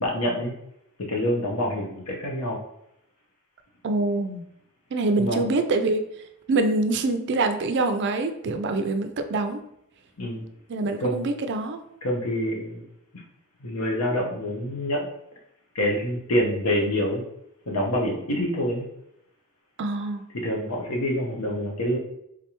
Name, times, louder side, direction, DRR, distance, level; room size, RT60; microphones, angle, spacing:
voice 1, 0.0-0.5 1.1-2.6 5.2-5.5 10.2-10.4 11.0-11.3 12.0-12.8 13.6-15.1 15.7-17.2 17.7-18.9 20.3-22.0, equal, 75° left, 0 dB, 1.0 m, -26 dB
voice 2, 3.8-4.4 4.9-6.0 6.5-9.6 10.7-11.8 19.8-20.2, right 2 dB, 50° right, 7 dB, 0.4 m, -25 dB
3.7 x 3.2 x 2.9 m, 0.78 s
head